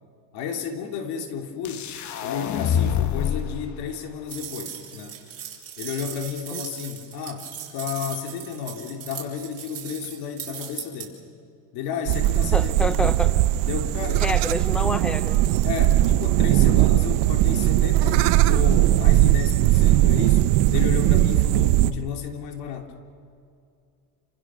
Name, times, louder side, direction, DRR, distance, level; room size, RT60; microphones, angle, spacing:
voice 1, 0.3-1.9 2.2-5.2 5.8-11.2 11.7-13.4 13.6-14.3 15.6-22.9, left 7 dB, 70° left, 4 dB, 3.0 m, -32 dB
sound 1, 1.7-3.6, left 9 dB, 45° left, 1.3 m, -25 dB
sound 2, 4.3-11.1, right 9 dB, 35° right, 6.1 m, -38 dB
sound 3, 12.1-21.9, right 15 dB, 80° right, 0.9 m, -19 dB
voice 2, 12.5-13.3 14.2-15.4, left 2 dB, ahead, 11 dB, 0.7 m, -27 dB
28.5 x 26.5 x 6.3 m, 2.5 s
cardioid pair, 125°, 39 cm